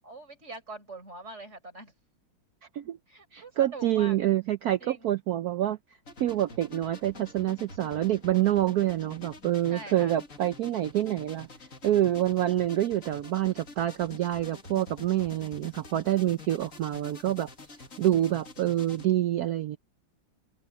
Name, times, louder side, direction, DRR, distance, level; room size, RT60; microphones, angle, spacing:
voice 1, 0.0-1.9 3.1-4.2 4.8-5.1 9.7-10.2, right 2 dB, 30° right, 5.0 m, -43 dB
voice 2, 3.3-5.8 6.2-11.5 11.8-17.5 18.0-19.8, right 13 dB, 85° right, 0.8 m, -27 dB
sound 1, 6.1-19.1, left 3 dB, 40° left, 2.5 m, -47 dB
omnidirectional pair, 2.3 m